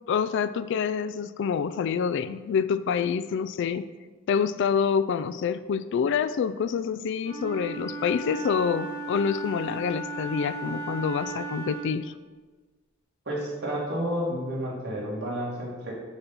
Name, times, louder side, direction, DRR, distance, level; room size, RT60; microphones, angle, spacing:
voice 1, 0.1-3.9 4.3-12.1, left 6 dB, 60° left, 14 dB, 0.3 m, -27 dB
Wind instrument woodwind instrument, 7.2-12.0, right 3 dB, 75° right, 1.9 m, -36 dB
voice 2, 13.3-15.9, equal, 60° right, -5 dB, 2.3 m, -30 dB
6.8 x 4.0 x 5.9 m, 1.3 s
head